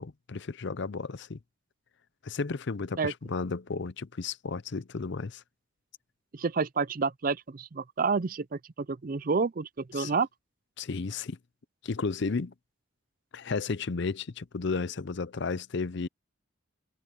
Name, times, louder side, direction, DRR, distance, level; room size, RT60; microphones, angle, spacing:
voice 1, 0.0-1.4 2.2-5.4 9.9-10.1 10.8-11.4 11.8-12.5 13.3-16.1, left 4 dB, 60° left, 0.6 m, -33 dB
voice 2, 6.3-10.3, right 4 dB, 45° right, 0.5 m, -29 dB
head